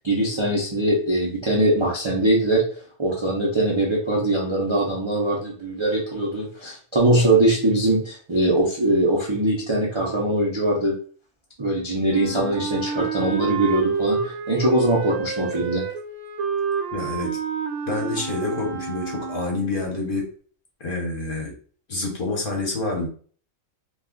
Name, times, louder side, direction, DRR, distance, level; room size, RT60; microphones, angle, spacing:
voice 1, 0.0-2.6 3.0-11.0 11.6-15.8, right 1 dB, 40° right, -4 dB, 0.4 m, -22 dB
Wind instrument woodwind instrument, 12.1-19.8, right 6 dB, 75° right, 0.9 m, -29 dB
voice 2, 16.9-17.3 17.9-20.3 20.8-21.5 21.9-23.1, left 2 dB, 45° left, 0 dB, 0.9 m, -27 dB
2.4 x 2.3 x 3.6 m, 0.44 s
omnidirectional pair, 1.4 m